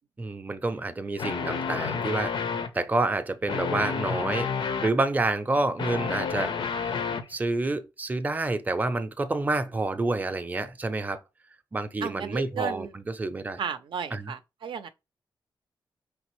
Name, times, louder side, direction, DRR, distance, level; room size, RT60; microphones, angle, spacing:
voice 1, 0.2-2.4 2.7-6.6 7.3-11.2 11.7-13.6 14.1-14.3, right 2 dB, 20° right, 0.5 m, -28 dB
sound 1, 1.2-2.8 3.5-5.0 5.6-7.3, left 6 dB, 75° left, 0.6 m, -30 dB
voice 2, 12.0-12.9 13.6-14.9, right 7 dB, 80° right, 0.4 m, -34 dB
5.1 x 3.3 x 3.1 m
wide cardioid pair, 120°, 8 cm